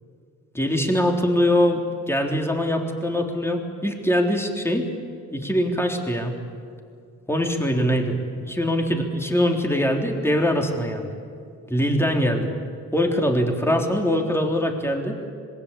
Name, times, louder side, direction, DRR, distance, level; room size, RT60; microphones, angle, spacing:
voice 1, 0.5-4.9 5.3-6.4 7.3-8.1 8.4-11.1 11.7-12.5 12.9-15.2, equal, 10° left, 2 dB, 3.8 m, -22 dB
26.0 x 21.5 x 8.5 m, 2.4 s
cardioid pair, 90°, 32 cm